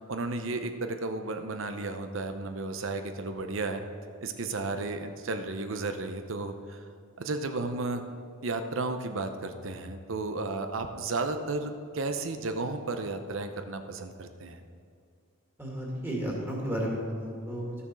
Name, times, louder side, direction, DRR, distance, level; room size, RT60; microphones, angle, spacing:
voice 1, 0.1-3.8 4.2-6.8 7.2-8.0 8.4-14.6, right 3 dB, 65° right, 7 dB, 0.7 m, -33 dB
voice 2, 15.6-17.8, equal, 10° right, -3 dB, 2.1 m, -33 dB
13.0 x 7.0 x 6.2 m, 2.3 s
head